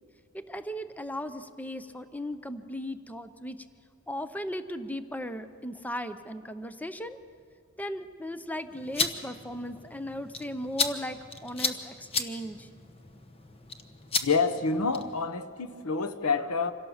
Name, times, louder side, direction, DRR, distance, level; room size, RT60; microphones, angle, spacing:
voice 1, 0.3-3.6 4.1-7.2 7.8-12.7, equal, 5° left, 0.6 m, -37 dB
sound 1, 8.7-15.2, left 4 dB, 25° left, 1.1 m, -34 dB
voice 2, 14.2-16.7, left 4 dB, 90° left, 1.1 m, -27 dB
26.0 x 17.5 x 7.1 m
head